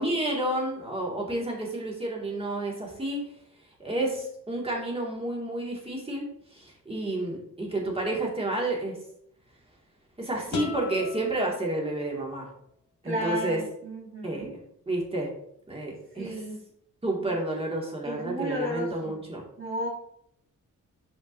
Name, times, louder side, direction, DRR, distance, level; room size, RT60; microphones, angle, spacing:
voice 1, 0.0-3.2 3.8-6.2 6.5-9.0 10.2-12.5 13.0-13.6 14.2-14.5 14.9-15.3 15.7-16.4 17.0-19.4, right 1 dB, 20° right, -2 dB, 2.0 m, -30 dB
sound 1, 10.5-12.4, left 5 dB, 90° left, 1.4 m, -39 dB
voice 2, 13.0-14.5 16.2-16.6 18.0-19.1 19.6-19.9, right 1 dB, 40° right, -4 dB, 2.6 m, -33 dB
8.1 x 5.1 x 2.6 m, 0.71 s
cardioid pair, 105°, 32 cm